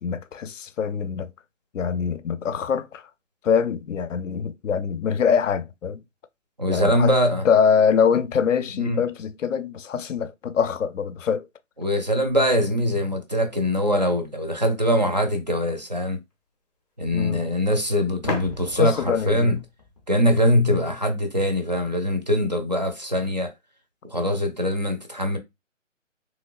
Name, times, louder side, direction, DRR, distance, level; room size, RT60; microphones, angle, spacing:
voice 1, 0.0-1.3 1.7-3.1 3.4-6.0 6.7-7.1 7.4-11.5 17.1-17.4 18.8-19.5, left 6 dB, 75° left, 0.5 m, -24 dB
voice 2, 6.6-7.5 8.7-9.0 11.8-16.2 17.0-19.6 20.1-23.5 24.0-25.4, equal, 35° right, 0.4 m, -22 dB
sound 1, 15.2-15.3 18.2-20.9, left 2 dB, 30° left, 0.5 m, -35 dB
3.1 x 3.0 x 2.3 m
hypercardioid pair, 165°, 38 cm